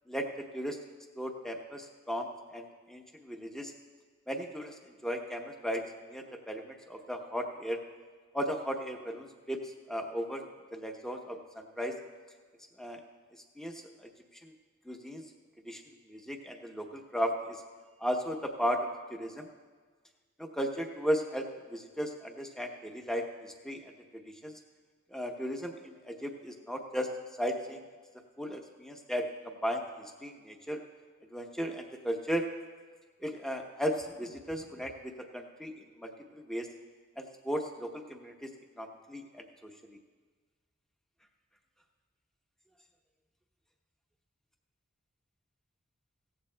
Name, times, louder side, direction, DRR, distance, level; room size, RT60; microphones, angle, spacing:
voice 1, 0.1-0.8 1.2-3.7 4.3-5.8 6.1-7.8 8.3-10.5 10.7-11.9 12.8-13.0 13.6-14.1 14.4-14.5 14.9-15.2 15.6-15.8 16.1-17.6 18.0-18.8 19.1-19.5 20.4-23.8 24.2-24.5 25.1-27.1 27.4-27.8 28.4-30.8 31.3-32.4 33.2-36.7 37.2-38.5 38.8-39.7, equal, ahead, 3 dB, 0.8 m, -36 dB
16.5 x 14.5 x 2.2 m, 1.5 s
head